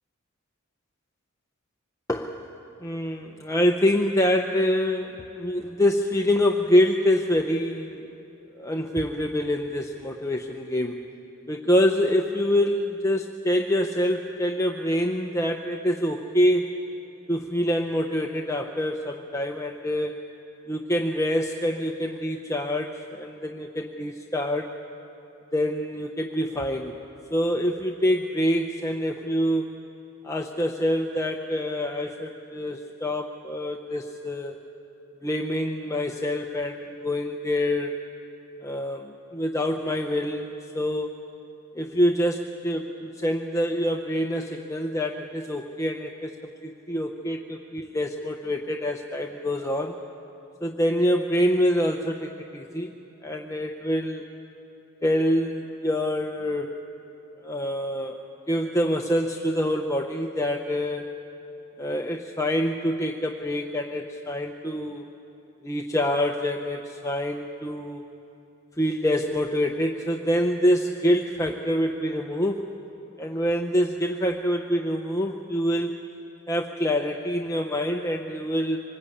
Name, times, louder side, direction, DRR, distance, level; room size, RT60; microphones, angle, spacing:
voice 1, 2.1-2.5 2.8-8.0 8.5-11.0 11.5-16.7 17.3-20.1 20.7-24.7 25.5-27.0 27.3-29.8 30.2-34.6 35.2-38.0 38.6-41.1 41.7-50.0 50.6-52.9 53.2-54.3 55.0-56.8 57.4-58.2 58.5-61.1 61.8-65.1 65.6-68.0 68.8-72.7 73.2-76.0 76.5-78.8, equal, 15° left, 2 dB, 0.8 m, -26 dB
25.0 x 20.5 x 8.6 m, 2.9 s
head